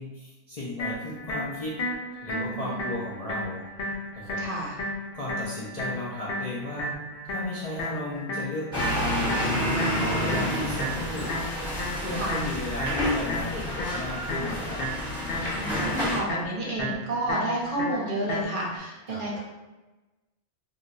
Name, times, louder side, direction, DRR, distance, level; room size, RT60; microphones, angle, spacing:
voice 1, 0.0-1.9 2.2-3.6 4.2-4.4 5.1-6.9 7.2-11.4 12.0-14.8 19.1-19.4, left 1 dB, 50° left, -7 dB, 0.5 m, -35 dB
sound 1, 0.8-18.8, left 1 dB, 80° left, 0.9 m, -34 dB
voice 2, 2.3-2.8 4.4-4.8 10.0-10.5 12.1-12.5 15.5-19.4, right 1 dB, 50° right, -4 dB, 0.9 m, -31 dB
sound 2, 8.7-16.2, equal, 5° right, 1.0 m, -29 dB
2.5 x 2.2 x 3.8 m, 1.1 s
omnidirectional pair, 1.2 m